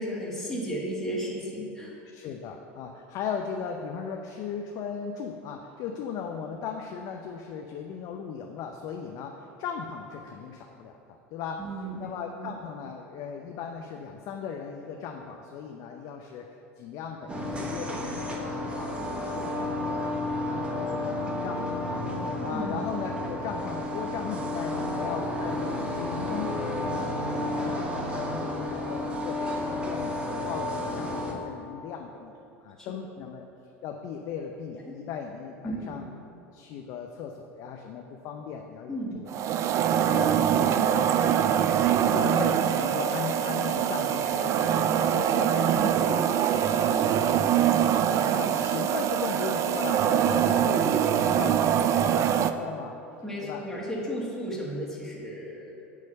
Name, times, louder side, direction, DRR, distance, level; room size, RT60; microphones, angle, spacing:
voice 1, 0.0-2.0 11.6-12.1 12.3-12.5 22.4-22.8 32.8-32.9 34.8-35.0 35.6-36.0 38.9-39.2 53.2-55.7, equal, 5° left, -6 dB, 1.8 m, -34 dB
voice 2, 2.1-10.9 11.3-11.6 12.0-16.5 16.8-20.0 20.3-21.9 22.4-32.3 32.6-33.5 33.8-36.0 36.5-39.3 39.8-41.1 42.1-46.3 46.7-48.0 48.3-52.9 53.4-53.6, left 6 dB, 55° left, 3 dB, 0.5 m, -37 dB
sound 1, 17.3-31.3, left 1 dB, 15° right, 1.1 m, -31 dB
sound 2, 39.3-52.5, right 9 dB, 45° right, 0.3 m, -24 dB
8.4 x 3.2 x 6.5 m, 2.8 s
hypercardioid pair, 85°, 7 cm